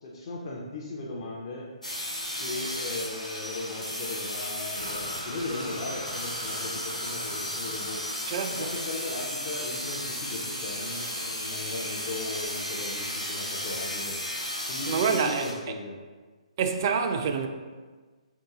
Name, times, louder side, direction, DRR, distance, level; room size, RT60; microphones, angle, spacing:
voice 1, 0.0-1.7 2.4-8.0 8.5-14.2 14.7-16.0, left 2 dB, 40° left, 0.5 m, -37 dB
sound 1, 1.8-15.5, left 1 dB, 85° left, 0.9 m, -34 dB
sound 2, 4.7-10.8, equal, 85° right, 0.8 m, -44 dB
voice 2, 8.3-8.7 14.9-15.5 16.6-17.5, right 6 dB, 35° right, 0.3 m, -26 dB
3.7 x 2.7 x 3.8 m
figure-of-eight pair, 130°, 4 cm